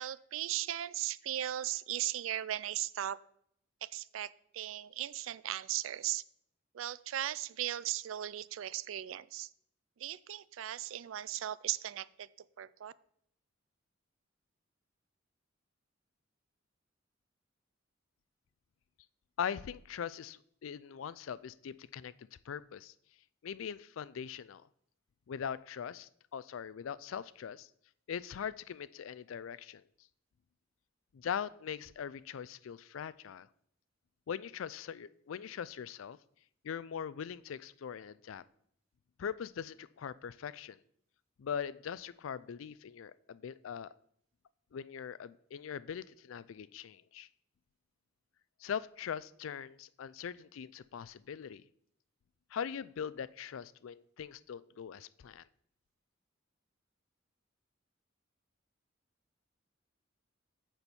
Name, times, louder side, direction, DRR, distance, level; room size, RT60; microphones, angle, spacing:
voice 1, 0.0-3.2 3.8-6.2 6.7-9.5 10.0-12.3 12.6-12.9, right 12 dB, 80° right, 19 dB, 0.4 m, -37 dB
voice 2, 19.4-22.9 23.4-24.7 25.3-27.7 28.1-29.8 31.1-33.5 34.3-36.2 36.6-38.4 39.2-40.8 41.4-43.9 44.7-47.3 48.6-51.6 52.5-55.4, left 7 dB, 85° left, 18 dB, 0.4 m, -41 dB
9.6 x 4.5 x 6.8 m, 0.69 s
head